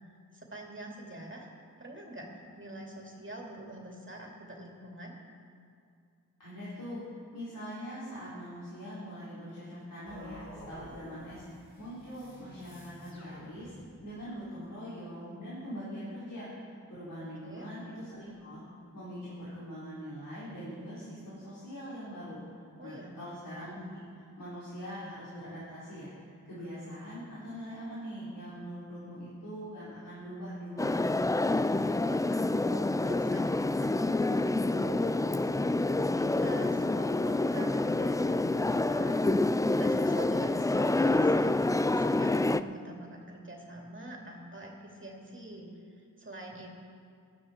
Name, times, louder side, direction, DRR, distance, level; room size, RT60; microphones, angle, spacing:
voice 1, 0.3-5.1 17.4-17.7 22.8-23.2 31.8-46.8, right 1 dB, 35° right, -1 dB, 2.6 m, -45 dB
voice 2, 6.4-7.1 7.3-11.4 11.8-13.7 14.0-18.6 18.9-22.4 22.8-31.1, equal, 75° left, -10 dB, 4.1 m, -42 dB
sound 1, 10.1-14.2, left 1 dB, 55° left, 3.3 m, -51 dB
sound 2, 30.8-42.6, left 2 dB, 10° left, 0.3 m, -27 dB
16.5 x 12.0 x 4.4 m, 2.3 s
wide cardioid pair, 60°, 33 cm